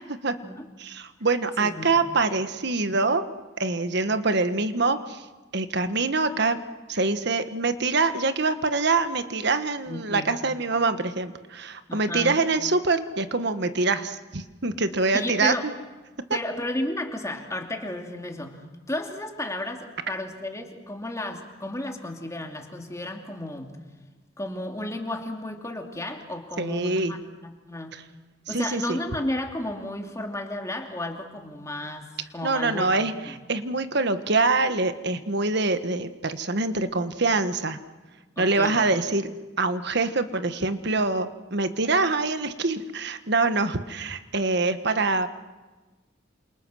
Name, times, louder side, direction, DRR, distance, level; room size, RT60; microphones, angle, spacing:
voice 1, 0.8-3.2 3.6-5.2 5.5-6.6 6.9-15.5 26.6-27.1 27.9-28.0 28.5-28.8 32.4-37.8 38.4-39.3 39.6-45.3, right 3 dB, 60° right, 10 dB, 1.4 m, -25 dB
voice 2, 1.6-2.0 9.9-10.3 11.9-12.3 15.1-15.7 16.3-18.6 18.9-23.7 24.4-27.9 28.5-32.9 33.3-33.4 38.4-38.8, left 1 dB, 15° left, 3 dB, 2.7 m, -33 dB
28.0 x 27.5 x 6.4 m, 1.2 s
head